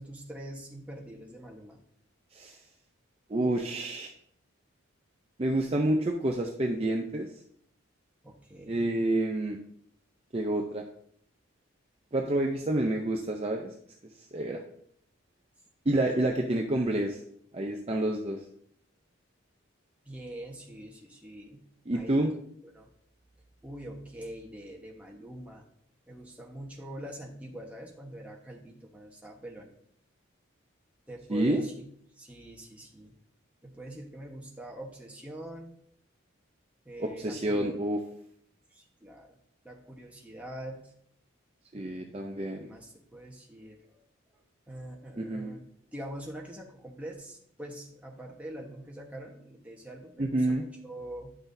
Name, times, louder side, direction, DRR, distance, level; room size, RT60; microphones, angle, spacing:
voice 1, 0.0-1.8 8.2-8.9 16.2-16.3 20.0-21.6 21.9-22.3 22.6-22.9 23.6-25.6 26.1-29.7 31.1-31.7 32.2-33.1 33.6-35.7 36.8-37.8 38.7-39.4 39.6-40.9 41.7-44.0 44.3-45.6 45.9-51.4, right 1 dB, 5° right, -1 dB, 1.1 m, -44 dB
voice 2, 3.3-4.1 5.4-7.3 8.7-9.6 10.3-10.8 12.1-13.7 14.3-14.6 15.9-17.2 17.5-18.4 21.9-22.3 31.3-31.6 37.0-38.0 41.7-42.7 45.2-45.6 50.2-50.6, right 1 dB, 30° right, 2 dB, 0.5 m, -28 dB
10.0 x 6.0 x 2.7 m, 0.68 s
head